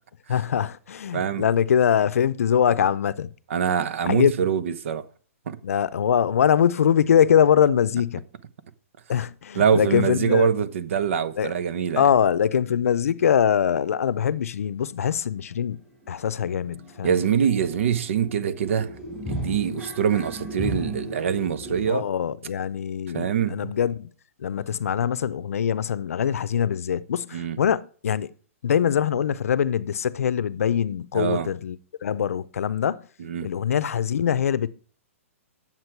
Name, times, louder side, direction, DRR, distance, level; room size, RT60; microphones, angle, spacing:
voice 1, 0.3-3.3 4.0-4.3 5.6-8.2 9.1-10.5 11.4-11.5 12.0-15.8 16.1-17.1 21.9-24.1 24.4-28.3 28.6-31.8 32.0-33.0 33.4-34.7, left 8 dB, 80° left, 0.5 m, -23 dB
voice 2, 1.1-1.4 3.5-5.0 5.5-5.6 9.5-12.1 17.0-18.9 19.3-22.1 23.1-23.7 27.3-27.6 31.1-31.5 33.2-33.5, right 7 dB, 60° right, 0.8 m, -24 dB
sound 1, 15.5-15.6 15.8-21.9, equal, 5° right, 3.9 m, -36 dB
9.6 x 7.4 x 4.5 m
hypercardioid pair, 160°, 8 cm